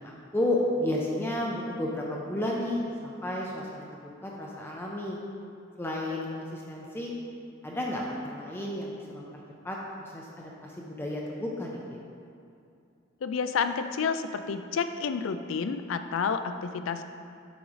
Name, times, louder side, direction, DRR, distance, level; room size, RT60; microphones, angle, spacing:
voice 1, 0.0-5.2 5.8-7.1 7.6-9.3 9.6-11.7, left 1 dB, 10° left, -3 dB, 0.5 m, -32 dB
voice 2, 13.2-17.0, left 5 dB, 75° left, 9 dB, 0.3 m, -30 dB
8.0 x 3.1 x 4.8 m, 2.5 s
head